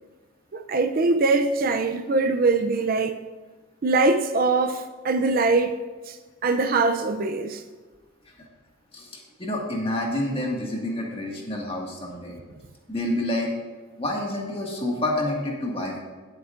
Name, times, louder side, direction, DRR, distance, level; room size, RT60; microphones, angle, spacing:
voice 1, 0.5-3.2 3.8-5.8 6.1-6.2 6.4-7.6, right 3 dB, 45° right, 0.4 m, -22 dB
voice 2, 8.9-12.4 12.9-13.5 14.0-16.0, left 1 dB, 25° left, 1.8 m, -28 dB
17.0 x 8.0 x 2.5 m
head